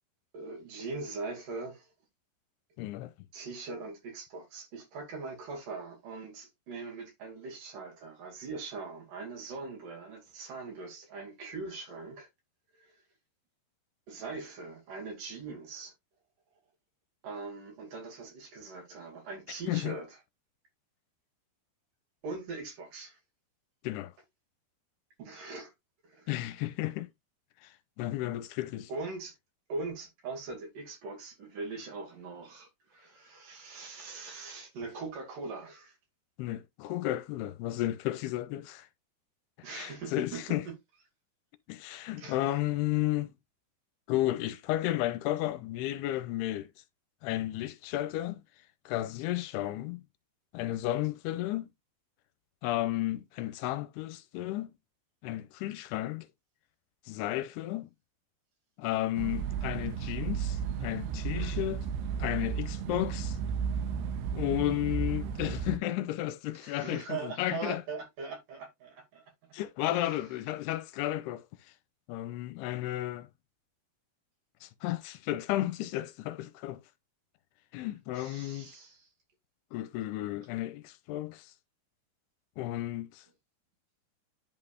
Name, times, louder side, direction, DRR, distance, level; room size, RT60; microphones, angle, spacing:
voice 1, 0.3-1.9 3.3-12.3 12.8-13.0 14.1-15.9 17.2-20.2 22.2-23.2 25.2-25.7 26.0-26.3 28.9-29.3 29.7-35.9 39.6-40.8 42.2-42.4 61.3-61.7 66.6-69.3 69.9-70.2 78.1-79.1, right 4 dB, 55° right, 3.8 m, -41 dB
voice 2, 2.8-3.1 19.7-20.0 23.8-24.1 26.3-27.1 27.6-28.9 36.4-38.9 39.7-40.6 41.7-43.3 44.1-46.7 47.2-48.4 48.9-50.0 50.5-51.7 52.6-54.7 55.2-56.3 57.1-57.9 58.8-61.8 62.2-63.4 64.3-67.8 69.5-71.4 72.1-73.3 74.6-76.8 77.7-78.7 79.7-81.5 82.6-83.3, left 15 dB, 80° left, 2.6 m, -33 dB
sound 1, 59.2-65.8, right 7 dB, 85° right, 2.7 m, -34 dB
11.0 x 4.0 x 2.4 m
omnidirectional pair, 4.7 m